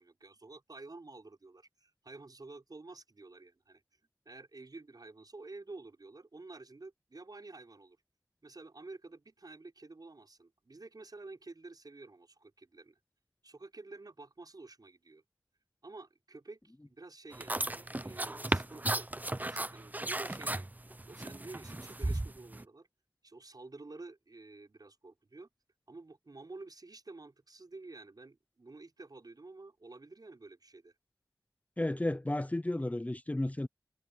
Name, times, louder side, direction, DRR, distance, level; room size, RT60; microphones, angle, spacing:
voice 1, 0.0-3.8 4.3-8.0 8.4-13.0 13.4-15.2 15.8-19.1 19.4-22.9 23.2-25.5 25.9-30.9, right 3 dB, 60° right, 5.9 m, -50 dB
sound 1, 17.3-22.6, right 1 dB, 20° right, 0.7 m, -35 dB
voice 2, 31.8-33.7, left 1 dB, 20° left, 0.6 m, -33 dB
wide cardioid pair, 70°, 7 cm